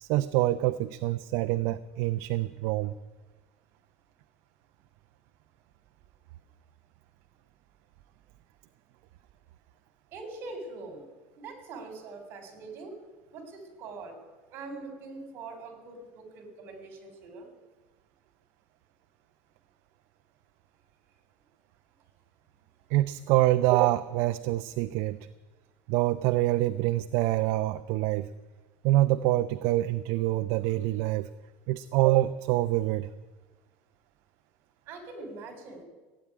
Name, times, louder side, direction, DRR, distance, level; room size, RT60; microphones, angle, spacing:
voice 1, 0.0-2.9 22.9-25.2 25.9-28.3 28.8-31.3 31.7-33.1, right 16 dB, 55° right, 12 dB, 0.5 m, -26 dB
voice 2, 10.1-11.0 11.4-12.9 13.3-14.1 14.5-17.5 34.9-35.8, right 3 dB, 40° right, 7 dB, 3.6 m, -43 dB
16.5 x 8.8 x 9.8 m, 1.2 s
cardioid pair, 160°, 6 cm